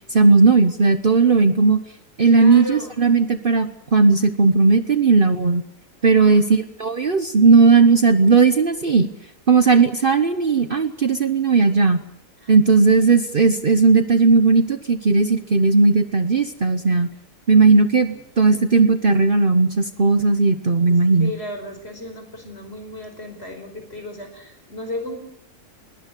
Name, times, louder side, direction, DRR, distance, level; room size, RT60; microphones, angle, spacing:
voice 1, 0.1-1.8 2.2-5.6 6.0-9.1 9.5-12.0 12.5-17.1 17.5-21.3, right 4 dB, 40° right, 9 dB, 1.1 m, -16 dB
voice 2, 2.2-3.0 6.2-6.4 12.4-12.5 17.5-17.7 18.1-18.6 21.2-25.2, left 1 dB, 45° left, 5 dB, 5.5 m, -34 dB
20.5 x 19.0 x 8.2 m, 0.78 s
omnidirectional pair, 1.5 m